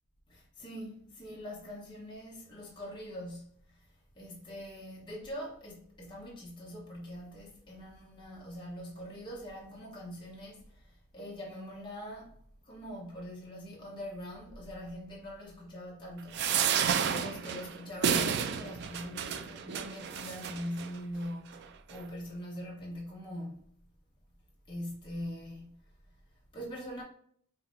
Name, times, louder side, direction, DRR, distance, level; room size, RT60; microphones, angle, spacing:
voice 1, 0.3-3.9 4.1-12.3 12.6-16.7 17.1-23.8 24.7-25.8 26.5-27.0, equal, 20° left, 1.0 m, -43 dB
sound 1, 16.3-20.9 21.5-21.6 21.9-22.0, right 7 dB, 50° right, 0.3 m, -31 dB
5.5 x 2.7 x 2.6 m
head